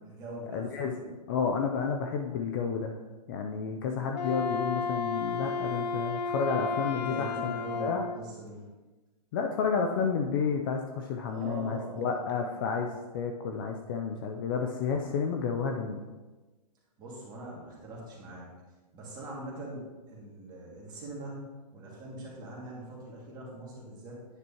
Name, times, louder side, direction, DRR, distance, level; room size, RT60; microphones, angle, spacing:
voice 1, 0.0-1.0 7.0-8.6 11.3-12.7 17.0-18.5 18.9-24.3, right 1 dB, 20° right, -4 dB, 2.1 m, -42 dB
voice 2, 0.5-3.0 3.3-7.5 7.8-8.1 9.3-16.0, left 6 dB, 30° left, 3 dB, 0.5 m, -31 dB
Wind instrument woodwind instrument, 4.1-8.2, left 4 dB, 90° left, 0.6 m, -32 dB
9.7 x 6.0 x 2.9 m, 1.2 s
hypercardioid pair, 145°, 21 cm